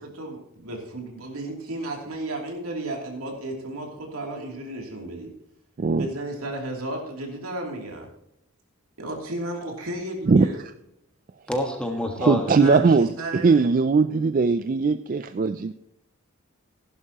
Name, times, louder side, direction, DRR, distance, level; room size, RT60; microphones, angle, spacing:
voice 1, 0.0-5.3 5.9-8.1 9.0-10.6 12.5-13.6, right 1 dB, 90° right, 0 dB, 2.9 m, -33 dB
voice 2, 11.5-13.0, left 1 dB, 5° left, 2 dB, 1.4 m, -28 dB
voice 3, 12.2-13.1 13.4-15.7, right 4 dB, 40° right, 11 dB, 0.3 m, -19 dB
16.0 x 11.0 x 2.9 m, 0.80 s
head